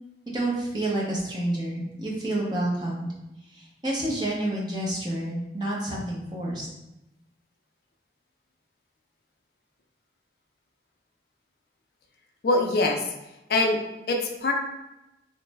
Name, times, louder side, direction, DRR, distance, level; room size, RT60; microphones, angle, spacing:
voice 1, 0.3-3.1 3.5-6.7, right 1 dB, 25° right, -4 dB, 0.7 m, -29 dB
voice 2, 12.4-13.1 13.5-13.8 14.1-14.5, left 2 dB, 55° left, 2 dB, 0.4 m, -23 dB
3.1 x 2.0 x 3.3 m, 0.93 s
head